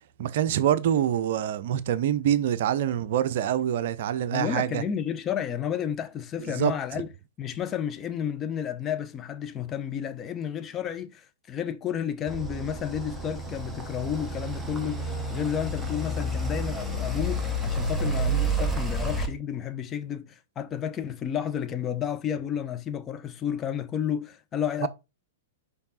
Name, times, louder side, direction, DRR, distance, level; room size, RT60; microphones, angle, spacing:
voice 1, 0.2-4.8 6.5-6.7 24.8-24.9, right 10 dB, 50° right, 0.5 m, -25 dB
voice 2, 4.3-7.1 7.4-24.9, left 9 dB, 25° left, 0.6 m, -31 dB
sound 1, 12.3-19.3, right 1 dB, ahead, 1.2 m, -30 dB
5.2 x 4.8 x 4.2 m
figure-of-eight pair, 105°, 0 cm